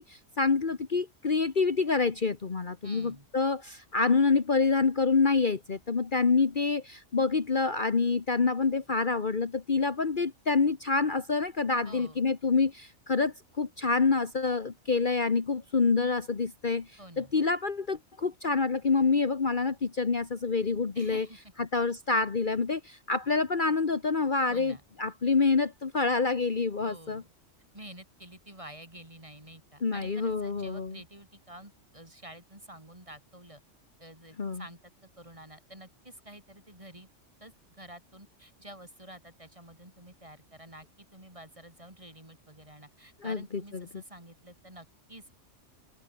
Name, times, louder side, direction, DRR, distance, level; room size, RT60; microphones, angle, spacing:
voice 1, 0.0-16.9 17.2-21.3 21.6-27.2 29.8-31.0 34.4-34.6 43.2-43.4 43.7-43.8, left 4 dB, 40° left, 1.4 m, -27 dB
voice 2, 2.8-3.3 11.9-12.2 17.0-17.3 21.0-21.4 24.5-24.8 26.8-27.3 27.7-33.6 34.0-34.8 35.2-37.1 37.4-45.4, right 1 dB, 25° right, 5.3 m, -49 dB
omnidirectional pair, 1.3 m